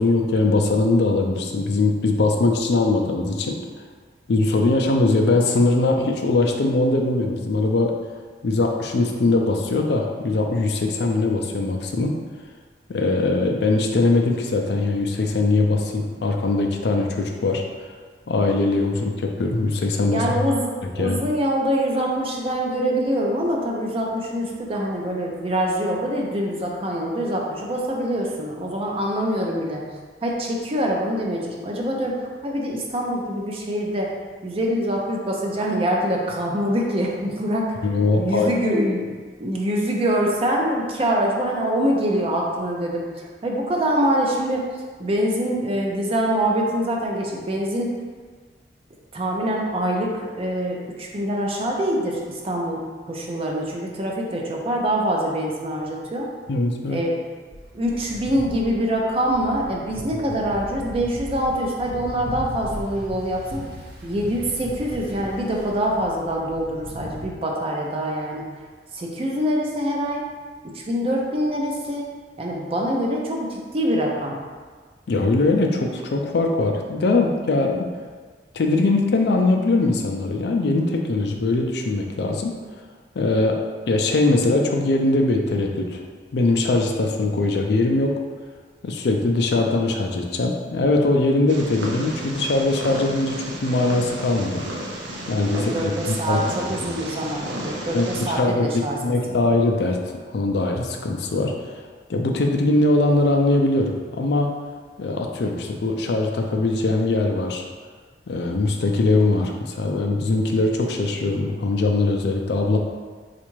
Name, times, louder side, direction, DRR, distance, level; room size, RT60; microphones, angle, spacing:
voice 1, 0.0-3.6 4.3-7.9 8.4-12.1 12.9-17.6 18.3-20.5 21.0-21.2 37.8-38.5 56.5-57.0 75.1-77.9 78.5-82.5 83.2-83.6 83.9-86.0 86.3-88.1 88.8-94.6 95.3-96.4 96.8-96.9 97.9-98.1 98.4-100.0 100.3-101.5 102.1-104.5 105.0-107.6 108.3-112.8, left 2 dB, 65° left, 2 dB, 0.4 m, -21 dB
voice 2, 20.1-29.8 30.2-34.1 34.4-37.7 38.0-39.1 39.4-47.9 49.1-56.3 56.9-57.2 57.7-63.6 64.0-68.5 68.9-70.2 70.6-72.1 72.4-74.4 95.5-99.4, equal, 35° right, -1 dB, 0.5 m, -24 dB
sound 1, 57.5-67.2, left 1 dB, 65° right, 0.9 m, -37 dB
Purr, 91.5-98.4, right 1 dB, 90° right, 0.6 m, -33 dB
4.3 x 2.4 x 3.1 m, 1.5 s
head